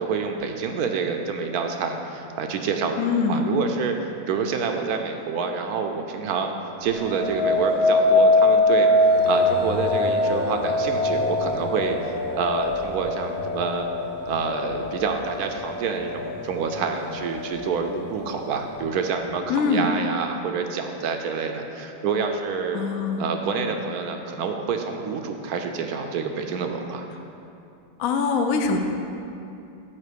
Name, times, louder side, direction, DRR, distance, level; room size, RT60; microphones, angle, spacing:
voice 1, 0.0-3.9 4.3-6.5 6.8-8.9 9.2-13.9 14.3-22.8 23.2-27.1, right 5 dB, 70° right, 5 dB, 1.0 m, -27 dB
voice 2, 3.0-3.5 19.5-19.9 22.7-23.3 28.0-28.8, left 4 dB, 65° left, 4 dB, 0.9 m, -23 dB
sound 1, 6.9-16.1 16.6-17.1, left 2 dB, 85° left, 1.5 m, -22 dB
7.2 x 5.1 x 6.8 m, 2.7 s
omnidirectional pair, 1.9 m